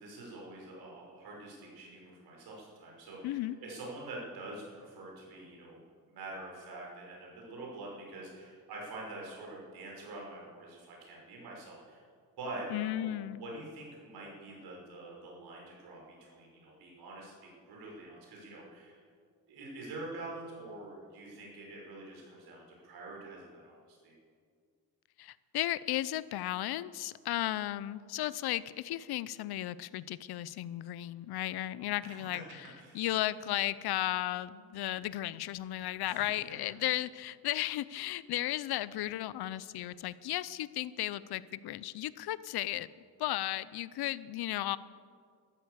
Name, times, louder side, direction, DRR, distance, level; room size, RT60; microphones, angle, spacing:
voice 1, 0.0-5.8 6.1-12.0 12.4-19.0 19.5-24.1 31.8-32.2 32.8-33.0 36.0-36.3, right 2 dB, 80° right, -2 dB, 5.5 m, -46 dB
voice 2, 3.2-3.6 12.7-13.4 25.2-32.4 32.9-42.9 43.2-44.8, left 14 dB, 80° left, 18 dB, 0.7 m, -35 dB
13.0 x 13.0 x 8.0 m, 2.1 s
cardioid pair, 130°, 38 cm